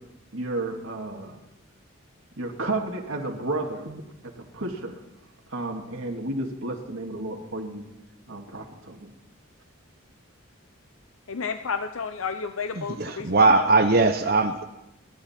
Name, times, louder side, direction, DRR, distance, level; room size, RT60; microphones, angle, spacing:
voice 1, 0.3-1.4 2.4-5.0 5.5-7.8 8.3-9.1, right 2 dB, 75° right, 0 dB, 2.1 m, -32 dB
voice 2, 11.3-13.6, left 5 dB, 75° left, 8 dB, 0.7 m, -31 dB
voice 3, 12.8-14.6, right 3 dB, 45° right, 7 dB, 0.7 m, -20 dB
28.0 x 11.5 x 4.4 m, 0.93 s
head